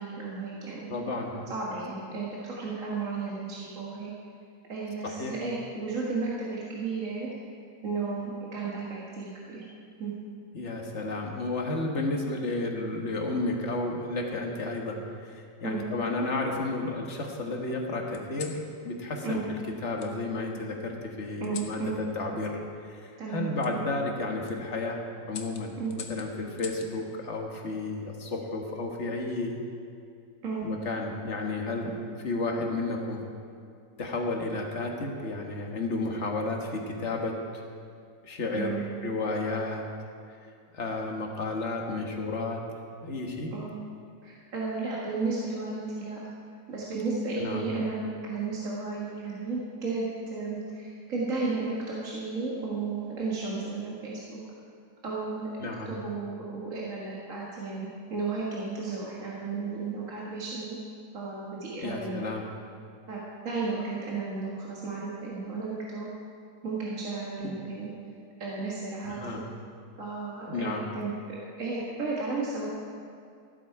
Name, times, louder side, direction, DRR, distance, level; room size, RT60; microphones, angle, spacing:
voice 1, 0.0-0.9 1.5-4.1 4.7-7.3 7.8-9.6 10.0-10.1 15.6-15.8 19.2-19.4 21.4-21.9 23.2-23.5 25.8-25.9 30.4-30.7 31.8-31.9 38.5-38.9 43.5-43.8 44.2-46.2 46.7-54.4 55.0-55.5 55.9-60.8 61.1-62.3 63.1-63.2 63.4-66.1 66.6-67.9 68.4-69.4 70.0-72.7, right 4 dB, 45° right, -5 dB, 2.0 m, -33 dB
voice 2, 0.9-1.3 5.0-5.3 10.5-22.6 22.9-29.6 30.6-31.9 32.2-33.2 34.0-37.6 38.2-39.8 40.7-42.6 43.0-43.5 47.4-47.7 55.6-55.9 61.8-62.5 69.0-69.4 70.5-70.9, left 2 dB, 40° left, 1 dB, 1.7 m, -32 dB
sound 1, 10.8-11.9 12.9-13.3 14.6-15.4 16.0-16.9 18.1-18.6 20.0-20.1 21.4-21.8 23.6-23.7 24.3-24.6 25.3-26.9 28.4-28.8, left 7 dB, 70° left, 1.5 m, -46 dB
14.5 x 12.5 x 4.8 m, 2.4 s
omnidirectional pair, 1.9 m